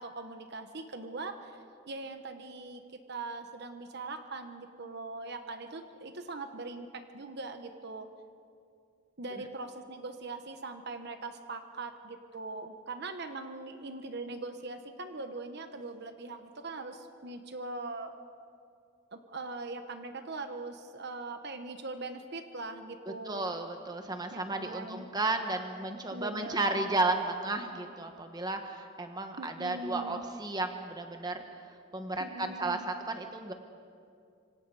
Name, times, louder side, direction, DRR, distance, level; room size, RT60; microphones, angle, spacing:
voice 1, 0.0-1.6 1.9-8.1 9.2-18.1 19.1-23.5 24.3-25.0 26.1-26.8 29.4-30.3 32.2-32.9, right 3 dB, 55° right, 7 dB, 1.2 m, -41 dB
voice 2, 23.3-31.4 31.9-33.5, right 2 dB, 20° right, 5 dB, 1.4 m, -33 dB
26.0 x 25.0 x 4.9 m, 2.4 s
head